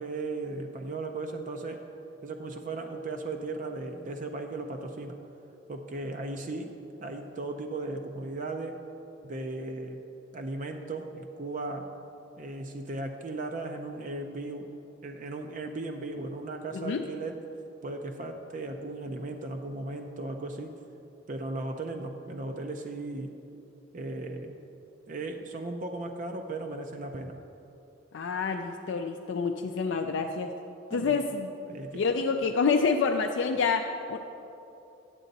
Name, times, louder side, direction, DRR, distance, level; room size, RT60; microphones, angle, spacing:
voice 1, 0.0-1.8 2.2-5.2 5.7-6.7 7.0-8.8 9.2-10.0 10.3-11.9 12.4-14.7 15.0-17.4 17.8-20.7 21.3-23.3 23.9-24.6 25.1-27.4 30.9-31.2 31.7-32.1, right 2 dB, 45° right, 4 dB, 0.5 m, -36 dB
voice 2, 28.1-30.5 30.9-31.5 31.9-34.2, left 5 dB, 70° left, 3 dB, 0.4 m, -27 dB
9.0 x 7.5 x 4.0 m, 2.8 s
head